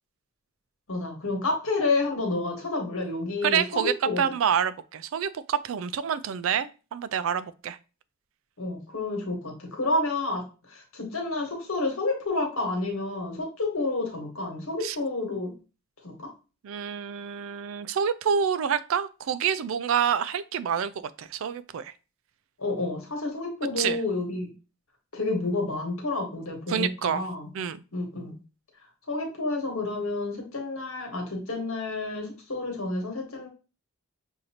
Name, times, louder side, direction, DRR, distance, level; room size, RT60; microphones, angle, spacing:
voice 1, 0.9-4.2 8.6-15.5 16.0-16.3 22.6-24.5 25.1-27.5 27.9-28.3 29.1-33.5, left 2 dB, 70° left, 1.4 m, -30 dB
voice 2, 3.4-7.8 14.8-15.0 16.6-21.9 23.8-24.0 26.7-27.2 27.5-27.8, right 8 dB, 65° right, 0.3 m, -27 dB
6.4 x 2.7 x 2.8 m
head